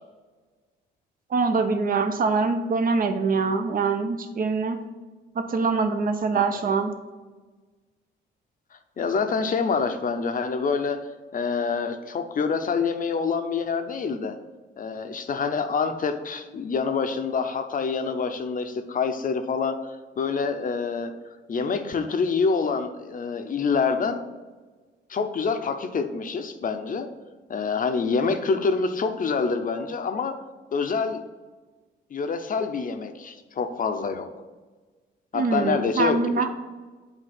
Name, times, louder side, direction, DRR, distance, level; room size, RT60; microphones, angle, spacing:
voice 1, 1.3-4.8 5.3-6.9 35.3-36.5, right 4 dB, 45° right, 7 dB, 0.8 m, -24 dB
voice 2, 6.3-6.7 9.0-11.0 11.3-14.4 14.8-19.7 20.2-21.1 21.5-24.2 25.1-27.1 27.5-30.3 30.7-31.2 32.1-34.3 35.3-36.4, left 5 dB, 45° left, 7 dB, 0.7 m, -26 dB
7.8 x 2.7 x 5.9 m, 1.3 s
cardioid pair, 90°, 20 cm